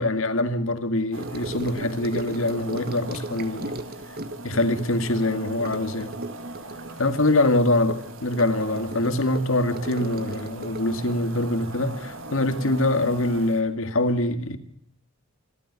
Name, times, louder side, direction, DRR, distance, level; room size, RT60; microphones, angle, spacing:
voice 1, 0.0-3.8 4.4-6.1 7.0-14.6, left 2 dB, 65° left, 2.0 m, -24 dB
sound 1, 1.1-13.6, right 2 dB, 65° right, 2.7 m, -40 dB
Gurgling / Sink (filling or washing) / Trickle dribble, 1.2-12.8 13.1-13.4 13.7-13.8, right 2 dB, 45° right, 1.7 m, -38 dB
26.0 x 13.0 x 8.2 m
head